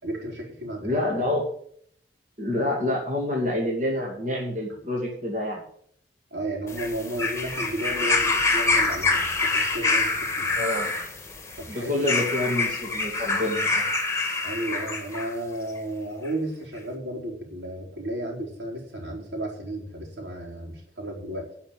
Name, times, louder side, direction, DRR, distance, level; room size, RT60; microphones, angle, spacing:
voice 1, 0.0-1.3 6.3-10.5 11.6-12.0 14.4-21.5, right 1 dB, 80° right, -1 dB, 4.3 m, -33 dB
voice 2, 0.8-1.4 2.4-5.6 10.5-10.9 11.7-13.8, left 1 dB, 45° right, -1 dB, 2.7 m, -27 dB
sound 1, 6.7-15.3 16.3-16.4, left 3 dB, 15° left, 1.7 m, -26 dB
11.5 x 5.9 x 8.9 m, 0.62 s
head